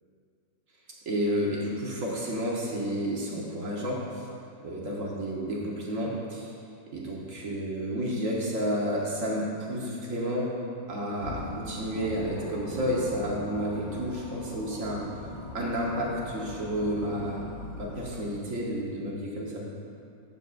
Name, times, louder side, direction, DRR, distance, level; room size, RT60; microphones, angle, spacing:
voice 1, 1.0-4.3 4.6-6.5 6.9-10.5 10.9-15.1 15.5-17.5 17.8-19.6, equal, 50° right, -4 dB, 1.4 m, -31 dB
sound 1, 11.2-18.4, left 2 dB, 70° left, 1.6 m, -40 dB
13.5 x 7.0 x 2.5 m, 2.5 s
omnidirectional pair, 1.9 m